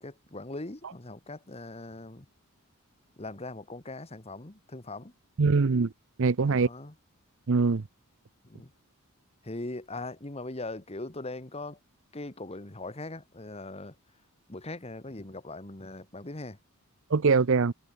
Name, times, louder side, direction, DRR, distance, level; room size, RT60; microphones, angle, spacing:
voice 1, 0.0-2.3 3.2-5.1 6.4-6.9 8.4-8.7 9.4-11.8 12.1-13.9 14.5-16.6, left 2 dB, 30° left, 1.5 m, -40 dB
voice 2, 5.4-5.9 6.2-6.7 7.5-7.8 17.1-17.7, right 4 dB, 60° right, 0.6 m, -23 dB
head